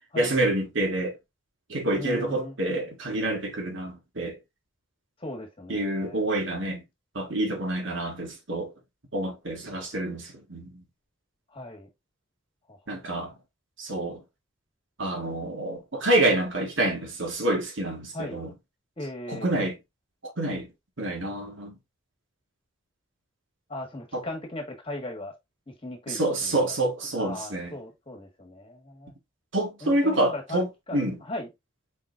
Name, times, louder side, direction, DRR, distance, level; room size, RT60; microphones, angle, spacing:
voice 1, 0.1-1.1 1.7-4.4 5.7-6.8 7.2-8.7 9.1-10.7 12.9-13.3 13.8-14.2 15.0-18.5 19.3-19.8 20.4-20.7 21.0-21.7 24.1-24.2 26.1-27.8 29.5-31.2, right 1 dB, 65° right, 1.7 m, -27 dB
voice 2, 1.9-2.6 5.2-6.2 11.5-11.9 12.7-13.0 18.1-18.4 19.0-19.6 23.7-25.3 25.7-26.7 27.2-29.1 29.8-31.5, left 1 dB, 25° left, 1.4 m, -38 dB
5.0 x 3.9 x 2.4 m
head